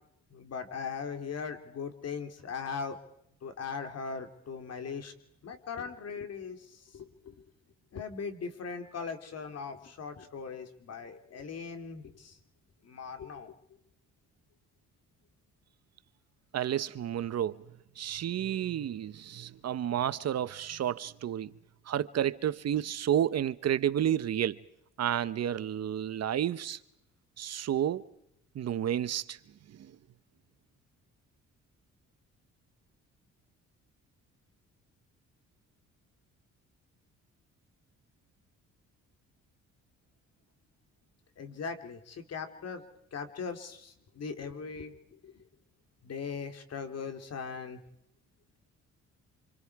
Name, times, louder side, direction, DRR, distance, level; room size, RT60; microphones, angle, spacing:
voice 1, 0.3-3.0 3.4-5.1 5.4-7.3 7.9-12.4 12.8-13.5 41.4-42.8 43.1-45.4 46.0-47.8, left 5 dB, 55° left, 3.0 m, -39 dB
voice 2, 16.5-17.6 18.0-21.5 21.9-24.6 25.0-26.8 27.4-28.1 28.5-29.4 29.7-29.9, right 10 dB, 55° right, 0.9 m, -31 dB
27.5 x 25.5 x 4.8 m
cardioid pair, 90°, 30 cm